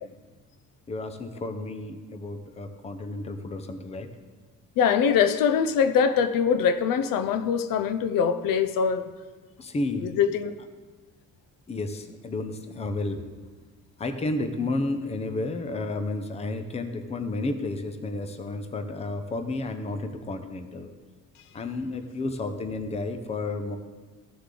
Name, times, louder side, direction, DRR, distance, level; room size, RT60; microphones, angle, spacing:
voice 1, 0.9-4.1 9.6-10.1 11.7-13.2 14.0-20.9 21.5-23.8, left 2 dB, 20° left, 8 dB, 0.6 m, -31 dB
voice 2, 4.8-9.1 10.0-10.5, left 7 dB, 85° left, 12 dB, 0.6 m, -23 dB
15.0 x 6.7 x 3.8 m, 1.4 s
cardioid pair, 165°, 33 cm